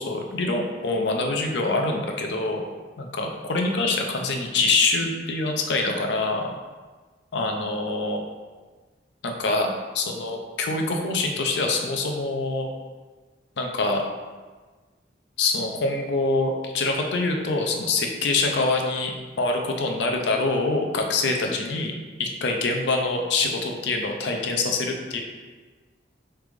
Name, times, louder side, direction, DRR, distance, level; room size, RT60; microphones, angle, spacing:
voice 1, 0.0-2.6 3.0-6.5 7.3-8.2 9.2-12.7 13.6-14.0 15.4-21.9 22.2-25.2, left 3 dB, 75° left, 2 dB, 0.5 m, -25 dB
3.7 x 3.3 x 3.4 m, 1.4 s
head